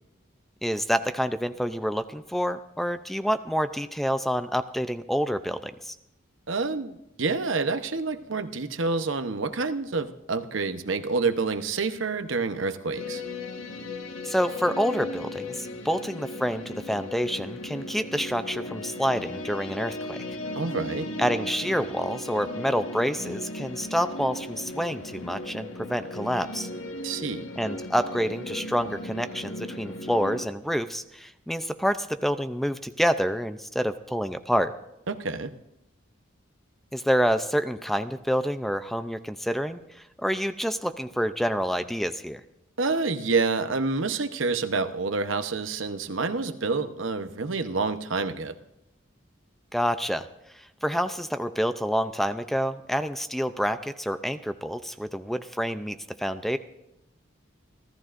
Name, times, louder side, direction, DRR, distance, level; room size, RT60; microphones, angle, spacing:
voice 1, 0.6-6.0 14.2-20.2 21.2-26.7 27.6-34.7 36.9-42.4 49.7-50.3 50.5-56.6, equal, ahead, 10 dB, 0.5 m, -28 dB
voice 2, 6.5-13.2 20.6-21.1 27.0-27.4 35.1-35.5 42.8-48.6, right 4 dB, 75° right, 9 dB, 0.9 m, -28 dB
sound 1, 13.0-30.5, left 2 dB, 80° left, 1.5 m, -36 dB
29.0 x 13.5 x 2.6 m, 0.87 s
head